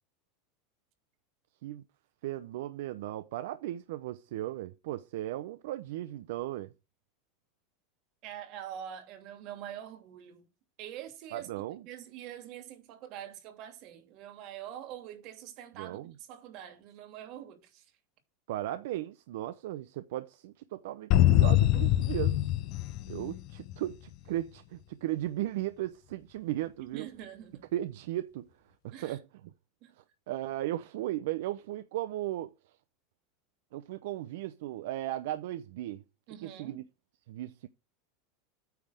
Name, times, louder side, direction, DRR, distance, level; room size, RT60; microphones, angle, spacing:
voice 1, 2.2-6.7 11.3-11.8 15.8-16.1 18.5-22.4 23.1-27.0 27.7-28.5 28.8-29.2 30.3-32.5 33.7-36.0 36.4-36.8 37.3-37.7, right 14 dB, 75° right, 0.7 m, -36 dB
voice 2, 8.2-10.5 10.8-17.8 26.8-27.7 28.9-29.2 29.8-29.9 36.3-36.8, right 10 dB, 50° right, 2.7 m, -45 dB
sound 1, 21.1-23.9, left 14 dB, 50° left, 0.7 m, -24 dB
9.3 x 3.6 x 6.4 m
supercardioid pair, 125°, 0 cm